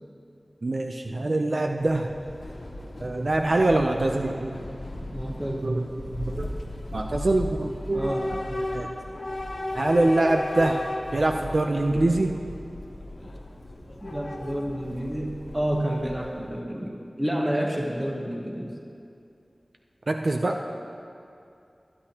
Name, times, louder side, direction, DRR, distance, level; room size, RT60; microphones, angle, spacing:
voice 1, 0.6-2.2 3.0-4.6 5.6-6.6 6.9-8.4 8.7-8.9 9.7-12.4 20.1-20.6, right 2 dB, 60° right, 3 dB, 0.5 m, -24 dB
Train / Subway metro underground, 1.7-16.6, left 1 dB, 70° left, 1.3 m, -36 dB
voice 2, 5.1-5.7 7.9-8.3 14.0-18.7, equal, 20° right, 0 dB, 1.2 m, -29 dB
20.5 x 9.8 x 2.9 m, 2.6 s
wide cardioid pair, 65°, 0 cm